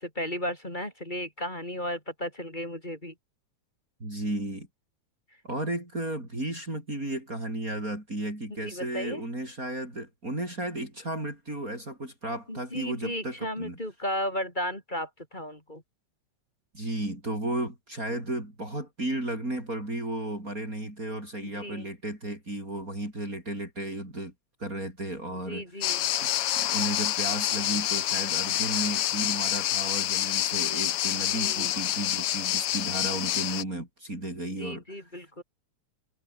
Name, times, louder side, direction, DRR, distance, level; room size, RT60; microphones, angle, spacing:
voice 1, 0.0-3.1 8.5-9.2 12.5-15.8 21.4-21.9 25.3-26.0 31.1-31.7 34.4-35.4, left 1 dB, 15° left, 4.8 m, -35 dB
voice 2, 4.0-4.7 5.4-13.8 16.7-24.3 24.6-25.7 26.2-26.3 26.6-35.0, right 1 dB, 25° right, 7.9 m, -34 dB
sound 1, 25.8-33.6, left 13 dB, 65° left, 1.6 m, -27 dB
omnidirectional pair, 3.3 m